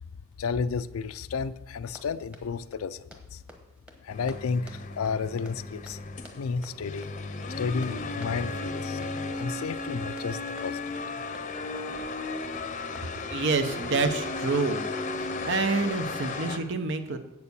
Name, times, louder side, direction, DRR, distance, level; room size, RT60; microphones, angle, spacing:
voice 1, 0.4-3.4 4.0-6.0 6.3-7.1 7.6-11.0, left 5 dB, 90° left, 12 dB, 0.4 m, -32 dB
Run, 1.9-13.6, equal, 5° right, 1.2 m, -53 dB
sound 1, 4.1-16.6, left 3 dB, 35° left, 0.7 m, -35 dB
voice 2, 13.3-14.8 15.1-17.2, right 3 dB, 60° right, 8 dB, 0.9 m, -28 dB
8.2 x 6.9 x 6.9 m, 0.97 s
head